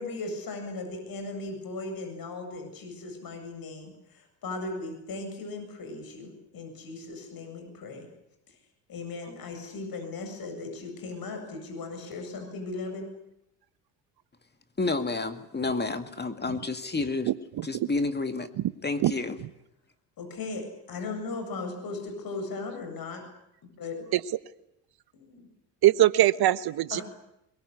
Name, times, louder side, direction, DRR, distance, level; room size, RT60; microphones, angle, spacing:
voice 1, 0.0-8.1 8.5-8.6 8.9-13.1 20.2-23.2 23.8-24.1 25.1-25.5 26.9-27.0, left 3 dB, 45° left, 5 dB, 7.8 m, -37 dB
voice 2, 14.8-17.3 17.6-18.5 18.8-19.4, left 3 dB, 20° left, 8 dB, 2.1 m, -30 dB
voice 3, 25.8-27.0, right 14 dB, 50° right, 15 dB, 1.3 m, -21 dB
22.5 x 21.5 x 9.9 m, 0.83 s
hypercardioid pair, 70°, 48 cm